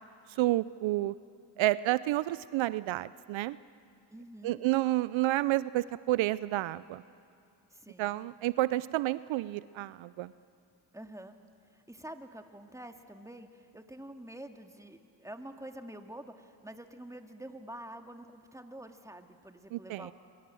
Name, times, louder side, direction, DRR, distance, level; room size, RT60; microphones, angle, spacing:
voice 1, 0.4-1.1 1.6-3.6 4.4-7.0 8.0-10.3 19.7-20.1, right 16 dB, 75° right, 17 dB, 0.6 m, -30 dB
voice 2, 4.1-4.6 7.7-8.2 10.9-11.4 11.7-20.1, right 1 dB, 5° right, 5 dB, 2.2 m, -47 dB
27.0 x 23.0 x 7.7 m, 2.4 s
supercardioid pair, 50°, 47 cm